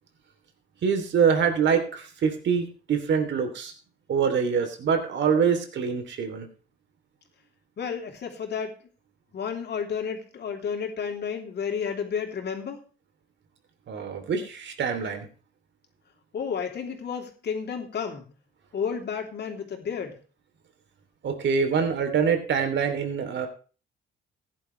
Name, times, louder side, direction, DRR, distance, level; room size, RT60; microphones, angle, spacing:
voice 1, 0.8-3.7 4.1-6.5 13.9-15.3 21.2-23.5, right 6 dB, 65° right, 6 dB, 3.1 m, -25 dB
voice 2, 7.8-8.8 9.3-12.8 16.3-18.3 18.7-20.2, left 6 dB, 60° left, 3 dB, 3.2 m, -31 dB
16.0 x 10.5 x 3.3 m, 0.36 s
cardioid pair, 90°, 20 cm